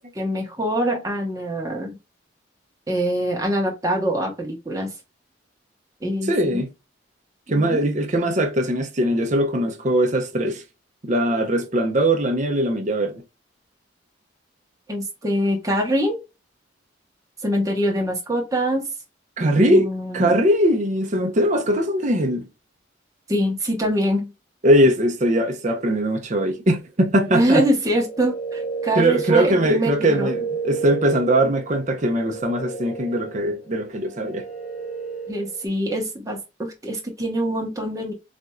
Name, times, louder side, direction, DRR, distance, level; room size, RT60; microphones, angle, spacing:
voice 1, 0.0-2.0 2.9-4.9 6.0-6.6 7.5-7.8 14.9-16.2 17.4-18.9 19.6-20.3 23.3-24.3 27.3-30.3 35.3-38.1, equal, 15° right, 0.9 m, -24 dB
voice 2, 6.2-6.7 7.5-10.6 11.0-13.2 19.4-19.9 20.1-22.4 24.6-27.7 29.0-34.4, right 1 dB, 40° right, 0.6 m, -20 dB
sound 1, 27.8-35.7, right 5 dB, 35° left, 0.8 m, -32 dB
4.2 x 2.5 x 2.3 m
head